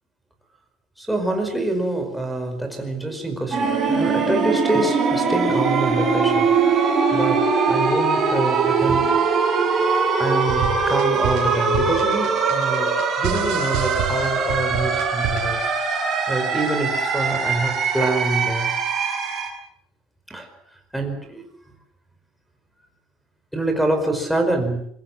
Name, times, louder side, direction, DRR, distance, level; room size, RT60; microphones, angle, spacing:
voice 1, 1.0-3.6 3.9-9.2 9.8-12.9 13.2-15.6 16.3-18.7 20.3-20.5 20.9-21.4 23.5-24.8, right 2 dB, ahead, 3 dB, 4.9 m, -26 dB
sound 1, 3.5-19.5, right 4 dB, 20° right, 7.1 m, -21 dB
sound 2, 10.5-15.7, right 12 dB, 65° right, 4.7 m, -30 dB
26.0 x 22.0 x 7.4 m, 0.67 s
cardioid pair, 160°, 0 cm